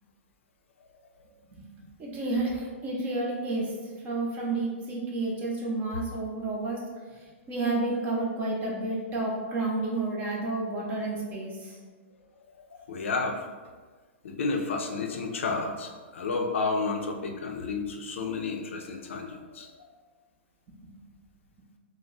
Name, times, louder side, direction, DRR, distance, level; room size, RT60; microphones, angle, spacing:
voice 1, 2.0-3.7 4.0-6.8 7.5-11.8, right 2 dB, 25° right, -3 dB, 0.6 m, -30 dB
voice 2, 12.1-13.5 14.2-19.9, left 4 dB, 75° left, 2 dB, 0.4 m, -32 dB
2.2 x 2.0 x 3.8 m, 1.5 s
hypercardioid pair, 140°, 7 cm